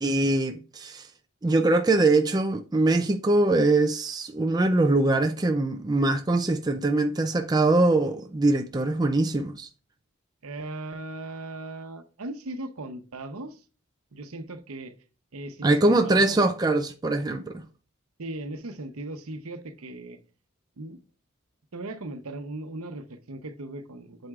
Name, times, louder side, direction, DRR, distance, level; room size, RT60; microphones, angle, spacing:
voice 1, 0.0-1.1 1.4-9.7 15.6-17.6, right 2 dB, 20° right, 0.4 m, -23 dB
voice 2, 10.4-13.6 14.1-14.9 15.3-16.4 18.2-20.2 20.8-21.0 21.7-24.3, right 2 dB, 80° right, 0.9 m, -38 dB
7.8 x 7.5 x 2.4 m
head